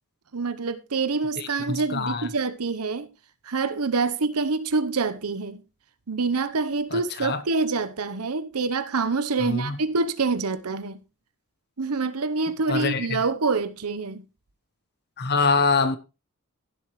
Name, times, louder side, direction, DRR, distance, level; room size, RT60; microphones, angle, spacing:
voice 1, 0.3-3.1 3.4-5.6 6.1-11.0 11.8-14.2, right 4 dB, 80° right, 0.9 m, -26 dB
voice 2, 1.4-2.3 6.9-7.4 9.4-9.8 12.7-13.1 15.2-16.0, left 4 dB, 45° left, 1.0 m, -25 dB
16.5 x 7.8 x 3.2 m
head